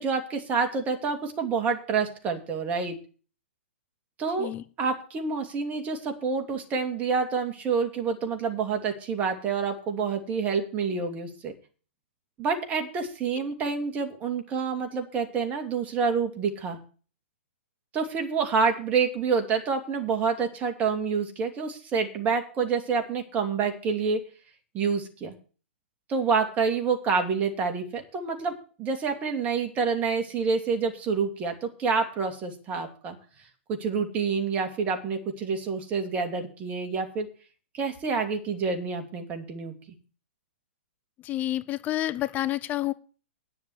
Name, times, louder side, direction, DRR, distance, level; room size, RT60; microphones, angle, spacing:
voice 1, 0.0-3.0 4.2-4.5 4.8-11.5 12.4-16.8 17.9-24.2 24.7-25.4 26.1-28.5 28.8-33.2 33.7-37.3 37.7-39.7, right 5 dB, 25° right, 5 dB, 2.7 m, -28 dB
voice 2, 41.2-42.9, left 14 dB, 25° left, 15 dB, 0.7 m, -29 dB
9.8 x 7.5 x 8.1 m, 0.38 s
hypercardioid pair, 135°, 7 cm